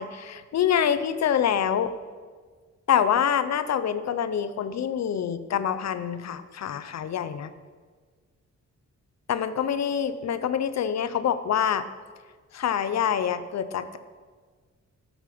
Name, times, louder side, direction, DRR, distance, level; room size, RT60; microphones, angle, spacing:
voice 1, 0.0-1.9 2.9-7.5 9.3-11.8 12.5-14.0, left 8 dB, 65° left, 13 dB, 0.7 m, -26 dB
12.5 x 8.5 x 6.1 m, 1.5 s
wide cardioid pair, 165°, 29 cm